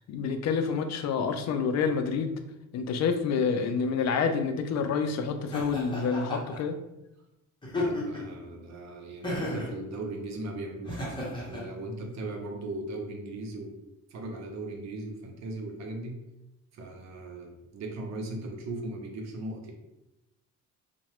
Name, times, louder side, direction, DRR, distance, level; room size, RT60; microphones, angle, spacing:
voice 1, 0.1-2.3 2.7-6.8, left 5 dB, 60° left, 7 dB, 0.4 m, -28 dB
Laughter, 5.5-6.6 7.6-8.3 9.2-9.7 10.8-11.6, left 1 dB, 15° left, 0.9 m, -33 dB
voice 2, 7.7-13.8 14.1-16.3 16.7-19.7, right 2 dB, 65° right, 2 dB, 0.7 m, -38 dB
2.8 x 2.2 x 3.0 m, 0.92 s
cardioid pair, 90°, 30 cm